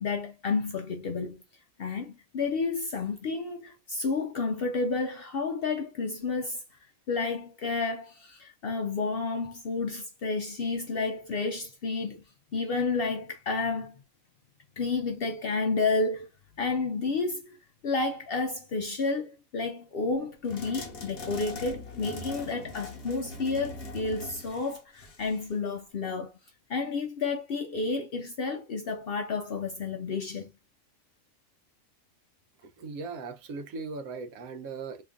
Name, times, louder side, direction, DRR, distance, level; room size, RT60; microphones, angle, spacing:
voice 1, 0.0-1.4 1.8-6.6 7.1-12.2 12.5-13.9 14.8-16.3 16.6-17.6 17.8-26.3 26.7-30.5, left 4 dB, 65° left, 0.6 m, -31 dB
sound 1, 20.5-25.5, left 2 dB, 50° left, 1.0 m, -41 dB
voice 2, 32.8-35.0, right 4 dB, 85° right, 1.1 m, -38 dB
3.0 x 2.4 x 3.5 m
omnidirectional pair, 1.5 m